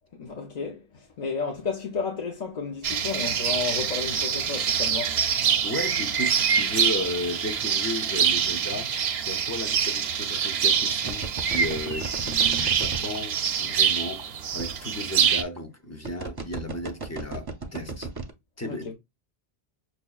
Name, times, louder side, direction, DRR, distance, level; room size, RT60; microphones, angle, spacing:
voice 1, 0.1-5.2 18.6-18.9, left 5 dB, 50° left, 0.7 m, -32 dB
sound 1, 2.8-15.4, right 7 dB, 90° right, 0.8 m, -25 dB
voice 2, 5.6-18.1 18.6-18.9, left 1 dB, 30° left, 0.3 m, -34 dB
sound 2, 11.1-13.2 14.1-14.2 14.6-14.7 15.4-15.6 16.0-18.3, right 4 dB, 30° right, 0.5 m, -34 dB
6.0 x 2.2 x 2.3 m
omnidirectional pair, 1.0 m